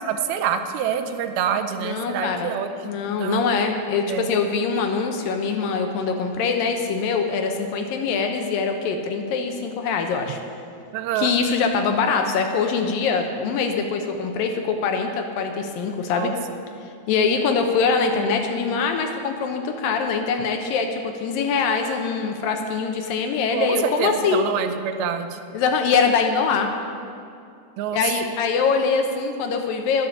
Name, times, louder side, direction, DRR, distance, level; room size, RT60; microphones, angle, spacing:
voice 1, 0.0-3.5 4.1-4.3 10.9-11.3 16.2-16.3 23.5-25.4 27.8-28.0, right 8 dB, 85° right, 8 dB, 2.5 m, -26 dB
voice 2, 1.8-2.5 2.8-10.4 11.2-16.3 17.1-24.4 25.5-26.7 27.9-30.1, left 5 dB, 75° left, 4 dB, 2.3 m, -23 dB
11.0 x 10.0 x 7.0 m, 2.5 s
omnidirectional pair, 4.4 m